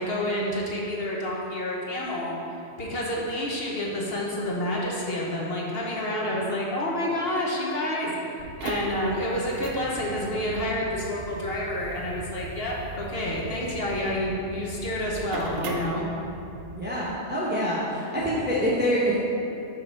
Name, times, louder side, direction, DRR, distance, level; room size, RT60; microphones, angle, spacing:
voice 1, 0.0-2.3 2.8-8.1 8.6-16.1, left 1 dB, 55° left, -3 dB, 1.1 m, -29 dB
sound 1, 8.4-16.7, right 2 dB, 85° right, 1.1 m, -38 dB
voice 2, 16.7-19.2, equal, 10° right, -7 dB, 0.8 m, -26 dB
6.4 x 4.2 x 5.4 m, 2.6 s
omnidirectional pair, 1.3 m